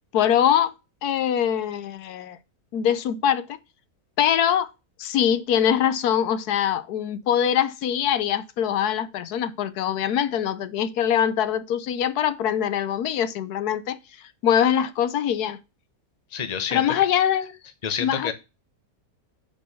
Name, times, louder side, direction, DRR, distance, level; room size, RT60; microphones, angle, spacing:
voice 1, 0.1-0.7 1.0-2.4 2.7-3.5 4.2-4.7 5.0-14.0 14.4-15.6 16.7-17.5 18.0-18.3, left 9 dB, 85° left, 1.3 m, -23 dB
voice 2, 16.3-16.9 17.8-18.3, left 7 dB, 30° left, 0.9 m, -28 dB
7.2 x 4.6 x 5.3 m
omnidirectional pair, 1.6 m